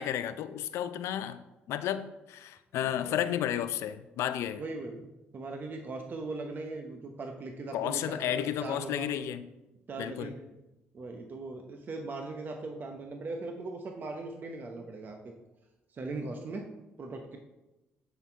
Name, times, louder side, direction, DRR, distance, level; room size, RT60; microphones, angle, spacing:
voice 1, 0.0-1.4 1.7-4.6 7.7-9.5 10.0-10.3, left 10 dB, 75° left, 12 dB, 0.4 m, -32 dB
voice 2, 4.6-5.0 5.3-9.1 9.9-10.5 10.9-15.3 15.9-16.7 17.0-17.4, right 3 dB, 45° right, 3 dB, 0.8 m, -39 dB
8.3 x 3.9 x 4.5 m, 1.0 s
supercardioid pair, 75°, 5 cm